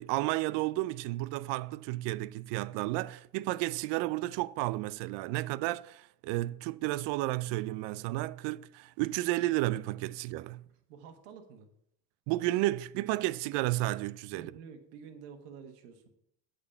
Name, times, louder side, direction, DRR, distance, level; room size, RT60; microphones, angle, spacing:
voice 1, 0.0-10.6 12.3-14.5, right 18 dB, 65° right, 0.5 m, -32 dB
voice 2, 10.9-11.7 14.3-16.1, right 6 dB, 80° right, 1.5 m, -49 dB
8.5 x 4.3 x 7.1 m
supercardioid pair, 80°, 47 cm